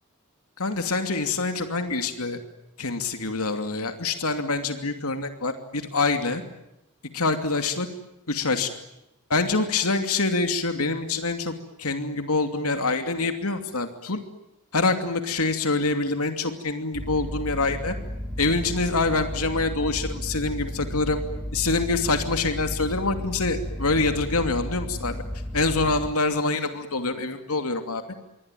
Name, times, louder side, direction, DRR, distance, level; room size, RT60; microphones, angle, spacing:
voice 1, 0.6-2.4 2.8-6.4 7.1-7.9 8.3-8.7 9.3-11.5 11.8-14.2 14.7-17.9 18.4-21.2 21.5-25.2 25.5-28.0, left 3 dB, 75° left, 7 dB, 2.7 m, -25 dB
sound 1, 16.9-26.1, left 1 dB, 5° left, 5.3 m, -33 dB
27.0 x 24.0 x 9.2 m, 0.89 s
head